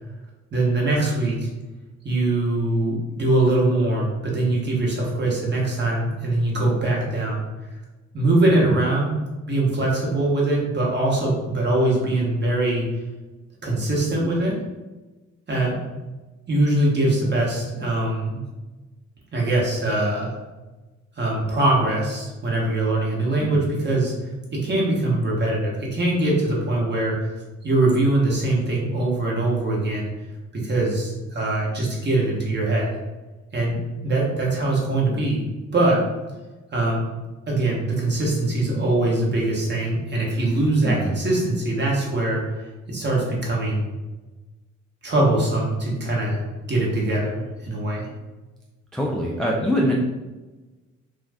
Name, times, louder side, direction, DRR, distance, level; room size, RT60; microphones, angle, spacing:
voice 1, 0.5-1.5 2.0-7.4 8.1-9.1 9.5-12.8 13.6-14.5 15.5-15.8 16.5-18.4 19.3-20.4 21.2-24.1 24.5-27.4 27.6-30.1 30.6-32.9 33.5-35.4 35.7-36.0 36.7-37.0 37.5-43.8 45.0-46.4 46.7-48.1, right 2 dB, 35° right, -3 dB, 1.0 m, -22 dB
voice 2, 40.8-41.2 48.9-49.9, equal, ahead, -3 dB, 0.3 m, -24 dB
2.4 x 2.4 x 3.3 m, 1.2 s
cardioid pair, 90°, 30 cm